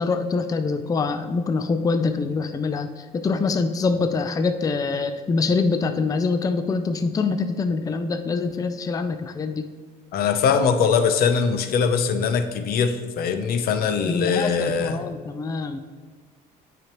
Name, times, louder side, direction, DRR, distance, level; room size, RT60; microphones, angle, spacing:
voice 1, 0.0-9.7 14.0-15.8, left 4 dB, 20° left, 9 dB, 0.4 m, -24 dB
voice 2, 10.1-15.1, left 6 dB, 65° left, 9 dB, 0.7 m, -22 dB
8.7 x 5.1 x 3.0 m, 1.5 s
cardioid pair, 110°, 17 cm